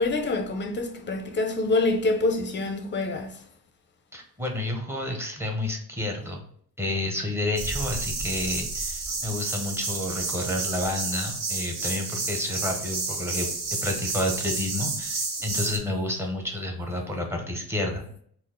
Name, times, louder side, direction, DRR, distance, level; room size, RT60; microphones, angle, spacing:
voice 1, 0.0-3.4, left 2 dB, 30° left, 0.5 m, -26 dB
voice 2, 4.1-6.4 6.8-18.1, left 1 dB, 5° right, 0.7 m, -30 dB
sound 1, 7.6-15.8, right 3 dB, 60° right, 0.8 m, -31 dB
4.3 x 2.4 x 3.6 m
wide cardioid pair, 170°, 38 cm